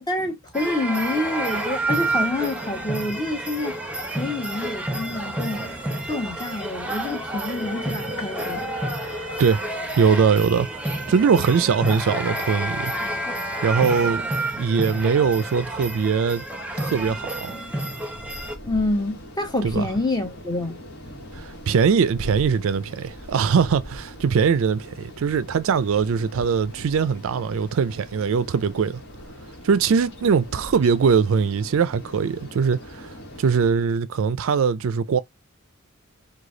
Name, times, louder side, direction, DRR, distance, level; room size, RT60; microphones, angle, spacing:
voice 1, 0.1-3.8 4.2-5.7 6.1-8.6 18.6-20.8, left 2 dB, 20° left, 1.1 m, -27 dB
sound 1, 0.5-18.5, right 1 dB, 5° right, 0.8 m, -29 dB
sound 2, 7.4-9.5, left 2 dB, 85° left, 1.1 m, -36 dB
voice 2, 10.0-10.7 11.1-12.9 13.6-14.2 14.6-16.4 16.8-17.5 19.6-19.9 21.3-29.0 29.6-35.2, right 6 dB, 65° right, 0.4 m, -21 dB
sound 3, 16.4-33.7, equal, 55° left, 1.3 m, -41 dB
4.8 x 2.3 x 3.8 m
head